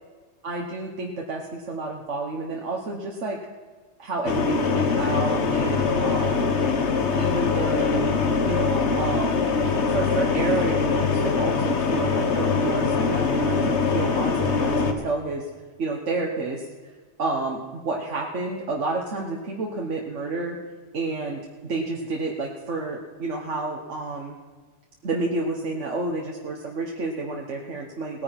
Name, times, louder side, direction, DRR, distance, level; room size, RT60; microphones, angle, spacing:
voice 1, 0.4-3.4 4.0-6.5 7.2-8.1 8.4-9.5 9.9-10.8 11.1-15.5 15.8-16.7 17.2-20.6 20.9-24.4 25.0-28.2, right 3 dB, 80° right, 0 dB, 1.7 m, -30 dB
sound 1, 4.3-14.9, left 4 dB, 65° left, 1.6 m, -23 dB
18.5 x 9.6 x 5.9 m, 1.5 s
omnidirectional pair, 1.2 m